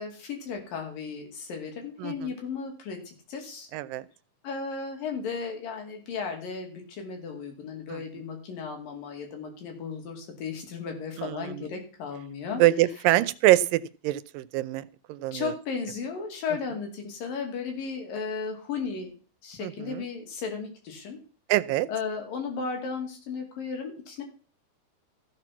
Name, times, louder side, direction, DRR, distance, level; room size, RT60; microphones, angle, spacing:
voice 1, 0.0-3.7 4.4-12.6 15.3-19.1 19.4-21.2 21.9-24.2, left 5 dB, 85° left, 3 dB, 4.3 m, -35 dB
voice 2, 2.0-2.3 3.7-4.0 7.9-8.0 11.2-11.7 12.6-15.5 19.6-20.0 21.5-21.9, right 16 dB, 85° right, 16 dB, 2.4 m, -25 dB
14.5 x 6.6 x 6.0 m, 0.40 s
omnidirectional pair, 3.9 m